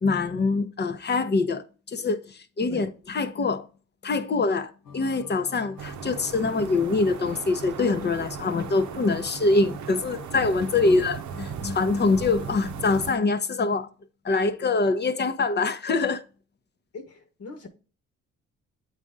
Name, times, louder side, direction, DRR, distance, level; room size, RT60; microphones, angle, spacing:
voice 1, 0.0-3.7 4.0-11.2 11.6-13.9 14.2-16.2, left 3 dB, 35° left, 0.8 m, -24 dB
sound 1, 4.8-13.2, left 5 dB, 90° left, 0.9 m, -47 dB
sound 2, 5.8-13.1, right 8 dB, 70° right, 0.7 m, -38 dB
voice 2, 16.9-17.7, left 3 dB, 55° left, 1.5 m, -39 dB
8.2 x 4.2 x 3.7 m
cardioid pair, 90°, 30 cm